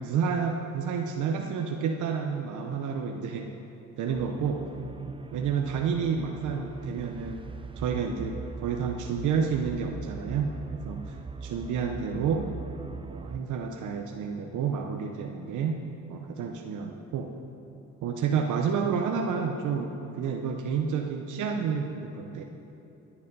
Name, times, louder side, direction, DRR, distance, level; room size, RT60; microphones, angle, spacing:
voice 1, 0.0-3.5 4.0-4.6 5.3-7.4 7.8-10.5 10.8-12.5 13.0-15.8 16.1-17.3 18.0-22.4, right 6 dB, 80° right, 2 dB, 0.9 m, -30 dB
sound 1, 4.1-13.4, right 4 dB, 15° right, 0.5 m, -40 dB
17.0 x 8.4 x 5.4 m, 3.0 s
cardioid pair, 90°, 30 cm